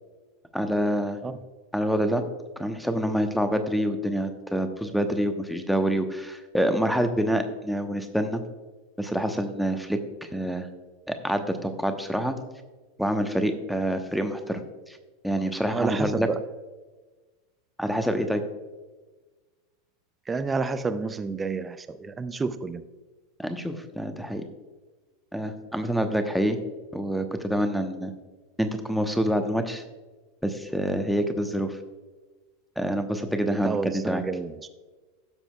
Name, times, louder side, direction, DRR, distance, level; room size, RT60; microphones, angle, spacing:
voice 1, 0.5-1.2 1.7-2.2 2.6-8.4 9.0-10.7 11.1-12.3 13.0-14.6 14.9-15.0 15.2-16.3 17.8-18.4 23.4-24.4 25.3-26.6 26.9-28.1 28.6-29.8 30.4-31.8 32.8-34.2, equal, ahead, 7 dB, 0.9 m, -26 dB
voice 2, 15.7-16.4 20.3-22.8 33.6-34.5, right 4 dB, 15° right, 12 dB, 0.5 m, -29 dB
16.0 x 7.2 x 2.3 m, 1.2 s
figure-of-eight pair, 85°, 0 cm